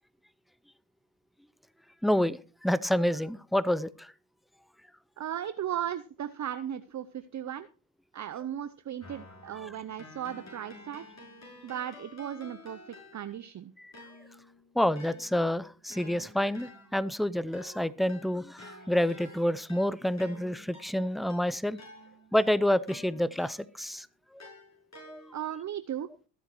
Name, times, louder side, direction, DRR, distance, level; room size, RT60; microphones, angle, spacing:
voice 1, 2.0-4.1 13.8-13.9 14.7-21.8 22.3-24.1 25.1-25.2, left 1 dB, ahead, 18 dB, 0.5 m, -28 dB
voice 2, 5.2-7.7 8.1-11.1 11.6-12.8 13.1-13.7 25.3-26.1, right 10 dB, 40° right, 12 dB, 0.7 m, -36 dB
Keyboard (musical), 9.0-13.5 13.9-23.9 24.4-25.6, left 1 dB, 35° left, 6.9 m, -51 dB
22.0 x 8.1 x 3.1 m, 0.35 s
supercardioid pair, 55°, 45 cm